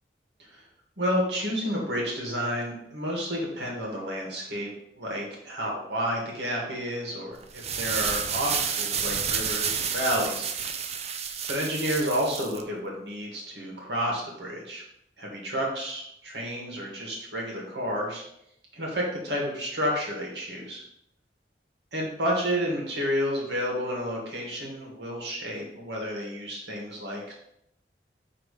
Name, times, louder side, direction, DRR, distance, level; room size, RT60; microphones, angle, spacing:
voice 1, 1.0-4.7 5.0-10.5 11.5-14.8 15.2-18.2 18.7-20.8 21.9-27.3, equal, 70° right, -2 dB, 1.9 m, -30 dB
sound 1, 7.4-12.6, right 7 dB, 35° right, 0.5 m, -30 dB
5.0 x 3.5 x 5.3 m, 0.75 s
head